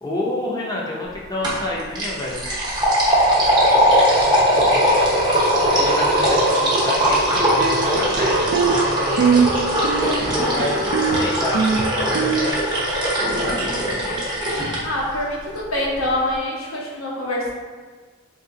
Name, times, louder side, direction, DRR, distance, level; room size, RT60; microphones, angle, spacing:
voice 1, 0.0-2.4 4.3-4.9 5.6-13.1 13.4-13.9, left 1 dB, 15° left, -4 dB, 0.5 m, -30 dB
sound 1, 1.4-1.7 1.9-14.8, equal, 20° right, 0.7 m, -19 dB
sound 2, 7.4-8.8 9.2-9.5 9.8-11.2 11.5-12.5, right 6 dB, 55° right, 0.3 m, -21 dB
voice 2, 10.2-10.6 14.8-17.5, left 1 dB, 75° left, -4 dB, 0.9 m, -25 dB
3.8 x 2.9 x 2.7 m, 1.4 s
head